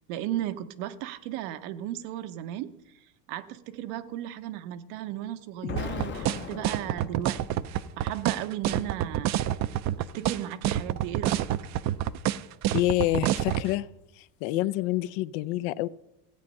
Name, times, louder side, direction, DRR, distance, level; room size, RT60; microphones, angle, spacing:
voice 1, 0.1-2.7 3.3-7.7 8.0-9.3 10.0-11.5, right 12 dB, 85° right, 10 dB, 1.0 m, -35 dB
Explosion, 5.6-7.8, left 7 dB, 25° left, 0.6 m, -38 dB
sound 1, 5.8-13.7, right 12 dB, 40° right, 0.4 m, -27 dB
voice 2, 12.7-13.9 14.2-15.9, left 16 dB, 75° left, 16 dB, 0.6 m, -27 dB
15.5 x 8.6 x 5.4 m, 0.91 s
cardioid pair, 140°, 45 cm